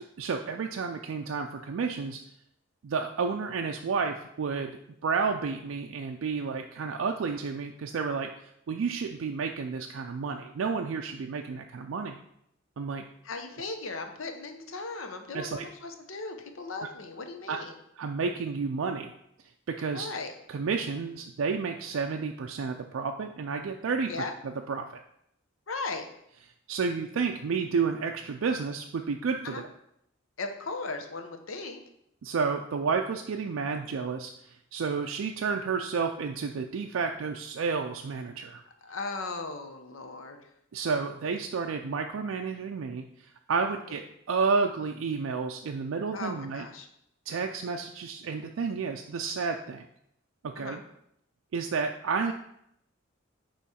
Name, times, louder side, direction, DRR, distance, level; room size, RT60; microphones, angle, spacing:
voice 1, 0.2-2.2 2.8-4.7 5.0-8.3 8.7-12.2 12.8-13.0 15.3-15.6 17.5-17.6 18.0-19.1 19.7-20.1 20.5-24.1 24.7-25.0 26.7-29.6 32.2-34.3 34.7-38.6 40.7-44.0 44.3-46.7 47.3-49.9 50.4-50.8 51.5-52.3, right 5 dB, 65° right, 3 dB, 0.4 m, -31 dB
voice 2, 13.2-17.8 19.9-20.3 24.1-24.3 25.7-26.0 29.4-29.6 30.4-31.8 38.8-40.5 43.9-44.0 46.1-46.9 50.6-50.8, left 3 dB, 70° left, 6 dB, 0.8 m, -37 dB
8.2 x 3.1 x 4.2 m, 0.75 s
head